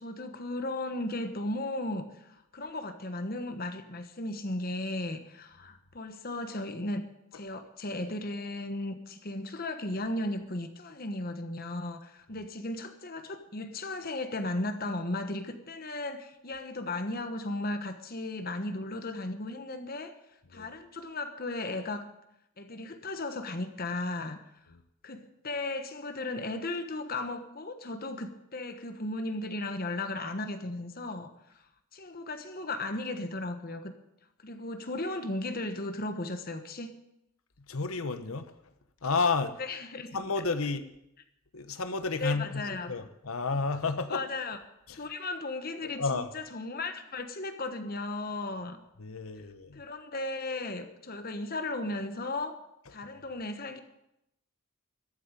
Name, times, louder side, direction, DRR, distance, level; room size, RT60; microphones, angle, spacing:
voice 1, 0.0-7.0 7.3-20.1 20.5-22.1 22.6-24.4 25.0-31.3 31.9-33.9 34.4-36.9 39.7-40.1 42.2-42.9 44.1-44.6 44.9-48.8 49.7-52.6 52.9-53.8, left 2 dB, 45° left, 1.2 m, -35 dB
voice 2, 37.7-38.7 39.0-39.6 40.1-40.9 41.5-44.2 44.9-45.1 45.8-46.3 49.0-49.8, left 4 dB, 80° left, 1.1 m, -32 dB
13.5 x 8.5 x 9.1 m
head